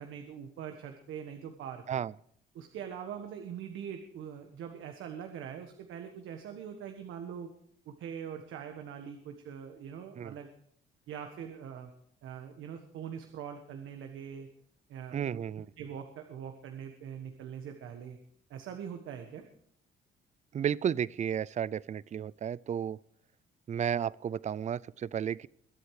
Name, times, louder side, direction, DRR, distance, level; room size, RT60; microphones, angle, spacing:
voice 1, 0.0-2.0 2.5-7.5 7.8-10.5 11.1-11.9 12.2-14.5 14.9-15.4 15.8-18.2 18.5-19.4, right 8 dB, 85° right, 6 dB, 1.4 m, -43 dB
voice 2, 15.1-15.7 20.5-23.0 23.7-25.5, right 8 dB, 35° right, 22 dB, 0.4 m, -33 dB
22.5 x 8.0 x 4.8 m, 0.67 s
cardioid pair, 90°, 20 cm